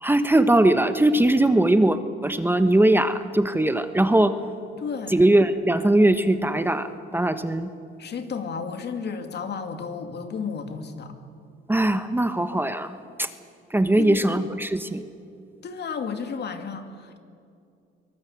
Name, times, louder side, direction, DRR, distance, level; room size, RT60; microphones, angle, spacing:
voice 1, 0.0-4.4 5.1-7.7 11.7-13.3 13.7-15.1, right 1 dB, 10° right, 10 dB, 1.1 m, -20 dB
voice 2, 4.7-5.2 8.0-11.1 14.0-14.3 15.6-17.2, left 5 dB, 60° left, 6 dB, 2.5 m, -32 dB
23.0 x 20.0 x 8.4 m, 2.4 s
cardioid pair, 90°, 20 cm